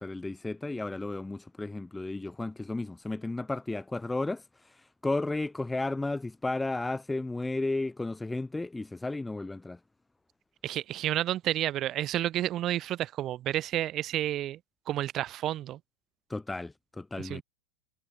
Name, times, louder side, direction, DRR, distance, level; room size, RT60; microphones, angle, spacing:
voice 1, 0.0-9.8 16.3-17.4, left 2 dB, 5° left, 1.2 m, -33 dB
voice 2, 10.6-14.6 14.9-15.8 17.2-17.4, right 13 dB, 30° right, 3.9 m, -30 dB
figure-of-eight pair, 90°, 0 cm